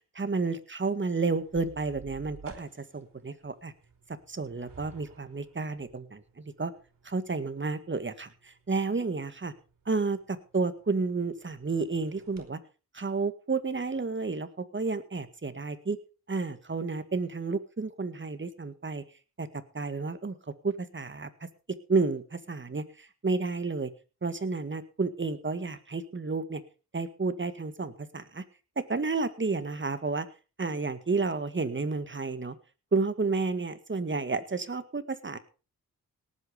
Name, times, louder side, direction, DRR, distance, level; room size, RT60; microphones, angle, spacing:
voice 1, 0.2-3.7 4.3-6.7 7.0-9.5 9.9-12.6 12.9-16.0 16.3-19.0 19.4-20.4 20.6-21.3 21.9-23.9 24.2-26.6 26.9-28.4 28.8-30.3 30.6-32.6 32.9-35.4, right 4 dB, 30° right, 11 dB, 1.9 m, -31 dB
sound 1, 1.3-12.5, right 6 dB, 60° right, 5.1 m, -54 dB
18.0 x 8.6 x 5.2 m, 0.35 s
cardioid pair, 70°, 36 cm